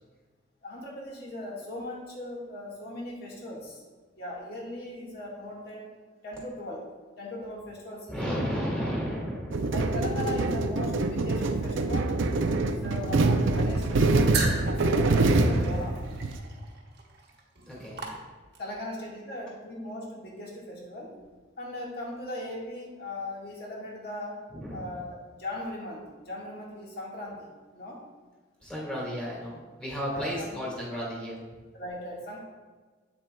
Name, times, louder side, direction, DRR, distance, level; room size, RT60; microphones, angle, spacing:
voice 1, 0.6-3.8 4.2-5.9 6.2-6.8 7.2-8.8 9.7-12.2 12.6-14.3 14.6-16.0 18.6-21.2 21.6-24.4 24.7-28.0 30.1-30.6 31.7-32.4, left 1 dB, 50° left, -3 dB, 1.7 m, -38 dB
voice 2, 8.1-9.7 17.7-18.1 24.5-24.9 28.6-31.4, equal, 5° left, -5 dB, 1.9 m, -33 dB
sound 1, 9.5-16.4, right 2 dB, 80° right, 0.5 m, -25 dB
sound 2, 14.3-18.8, right 4 dB, 55° right, 1.1 m, -37 dB
8.3 x 7.3 x 2.3 m, 1.4 s
head